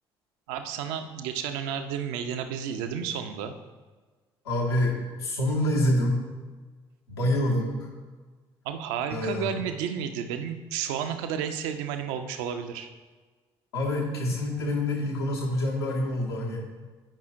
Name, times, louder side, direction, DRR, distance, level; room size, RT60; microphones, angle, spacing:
voice 1, 0.5-3.5 8.6-12.9, right 8 dB, 65° right, 7 dB, 0.7 m, -32 dB
voice 2, 4.4-6.2 7.1-7.9 9.1-9.5 13.7-16.6, left 1 dB, 80° left, -2 dB, 1.5 m, -26 dB
16.5 x 5.6 x 2.5 m, 1.4 s
figure-of-eight pair, 50°, 13 cm